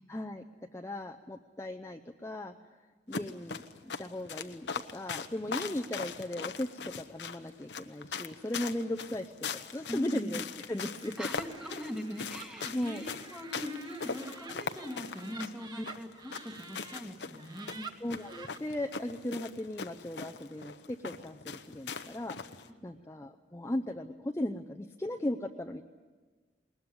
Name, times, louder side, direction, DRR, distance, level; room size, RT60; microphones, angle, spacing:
voice 1, 0.1-0.4 0.7-2.5 3.1-9.3 9.7-11.3 12.7-13.0 15.8-15.9 18.0-22.4 22.8-25.8, left 1 dB, 15° left, 3 dB, 0.6 m, -37 dB
sound 1, 3.1-22.7, left 5 dB, 90° left, 1.0 m, -41 dB
voice 2, 9.9-10.4 11.2-17.8, equal, 5° right, 3 dB, 2.3 m, -41 dB
Laughter, 10.8-17.0 17.4-18.6, right 4 dB, 25° right, 1.3 m, -49 dB
20.5 x 20.0 x 9.7 m, 1.4 s
head